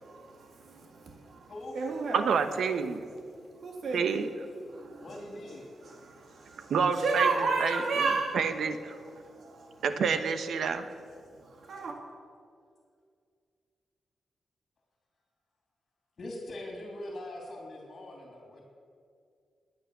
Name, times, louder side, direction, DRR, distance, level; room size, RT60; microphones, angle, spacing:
voice 1, 0.0-2.3 3.4-4.2 4.7-5.2 5.8-8.5 9.0-9.8 11.3-12.0, right 4 dB, 65° right, 1.9 m, -33 dB
voice 2, 2.1-3.0 3.9-4.3 6.7-7.3 7.6-7.8 8.3-9.0 9.8-10.9, right 6 dB, 80° right, 1.1 m, -28 dB
voice 3, 5.0-5.6 16.2-18.6, left 1 dB, 50° left, 3.2 m, -42 dB
20.5 x 9.9 x 6.8 m
wide cardioid pair, 130°, 0 cm